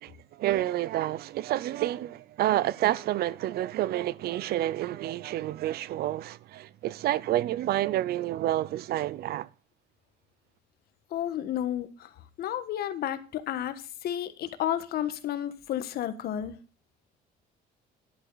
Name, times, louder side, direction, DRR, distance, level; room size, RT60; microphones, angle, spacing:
voice 1, 0.0-9.5, right 14 dB, 65° right, 0.6 m, -29 dB
voice 2, 11.1-12.1 12.4-16.6, left 11 dB, 65° left, 1.5 m, -32 dB
11.5 x 11.0 x 4.0 m
cardioid pair, 110°, 17 cm